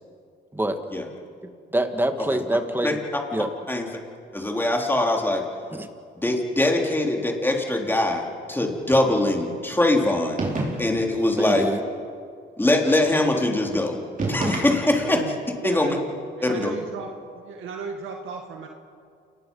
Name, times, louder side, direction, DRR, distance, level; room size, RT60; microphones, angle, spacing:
voice 1, 1.7-3.0 3.3-3.5 5.7-5.9 11.4-11.8, right 1 dB, 10° right, 7 dB, 2.0 m, -25 dB
voice 2, 4.3-5.4 6.2-10.4 10.8-11.6 12.6-14.0 14.3-15.2 15.6-16.0 16.4-16.7, left 1 dB, 10° left, 1 dB, 3.7 m, -22 dB
sound 1, 10.4-11.1 14.2-15.2, right 2 dB, 40° right, 5.5 m, -28 dB
voice 3, 15.0-15.4 15.6-16.0 16.4-17.1 17.3-18.7, right 5 dB, 80° right, 3 dB, 2.0 m, -34 dB
29.0 x 19.5 x 5.6 m, 2.3 s
cardioid pair, 90°, 20 cm